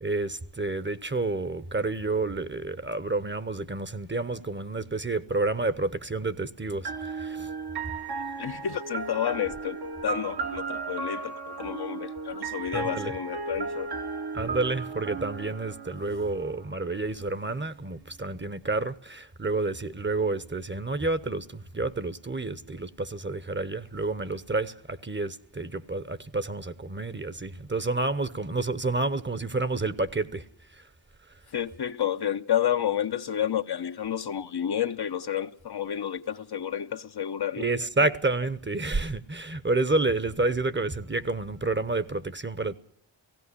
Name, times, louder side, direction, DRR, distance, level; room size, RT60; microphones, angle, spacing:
voice 1, 0.0-7.5 12.7-13.2 14.3-30.4 37.6-42.7, right 3 dB, 25° right, 0.9 m, -29 dB
sound 1, 6.8-16.6, right 4 dB, 55° right, 1.1 m, -35 dB
voice 2, 8.4-13.9 31.5-37.7, left 9 dB, 60° left, 0.8 m, -30 dB
17.0 x 16.5 x 9.8 m
cardioid pair, 60°, 45 cm